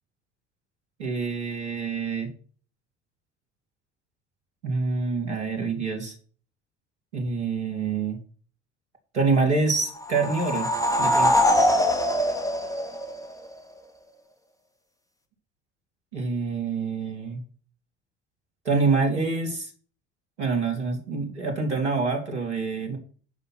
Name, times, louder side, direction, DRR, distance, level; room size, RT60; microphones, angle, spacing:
voice 1, 1.0-2.3 4.6-6.2 7.1-8.2 9.1-10.7 11.0-11.4 16.1-17.4 18.6-19.7 20.4-23.0, right 4 dB, 85° right, 3 dB, 2.5 m, -26 dB
sound 1, 10.0-13.5, left 1 dB, 10° left, 2.3 m, -23 dB
9.9 x 5.6 x 5.8 m, 0.40 s
hypercardioid pair, 60°, 33 cm